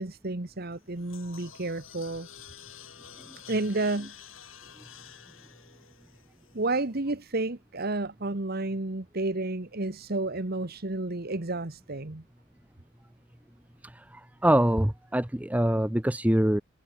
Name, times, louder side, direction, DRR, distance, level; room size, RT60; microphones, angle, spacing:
voice 1, 0.0-2.3 3.5-4.1 6.5-12.2, right 2 dB, 50° right, 1.4 m, -31 dB
sound 1, 0.7-7.0, left 9 dB, 85° left, 6.0 m, -50 dB
voice 2, 14.4-16.6, right 1 dB, 5° right, 0.7 m, -24 dB
head